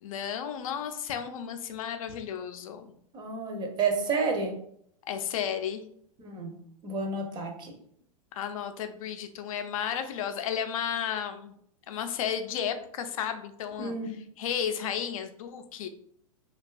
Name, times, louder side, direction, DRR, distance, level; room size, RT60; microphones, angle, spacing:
voice 1, 0.0-2.9 5.0-5.9 8.3-11.5 11.9-14.0 14.4-15.9, left 8 dB, 65° left, 8 dB, 0.4 m, -33 dB
voice 2, 3.1-4.5 6.2-6.5 6.8-7.7 13.8-14.1, right 4 dB, 25° right, 2 dB, 0.6 m, -30 dB
2.5 x 2.2 x 2.3 m, 0.68 s
hypercardioid pair, 115°, 19 cm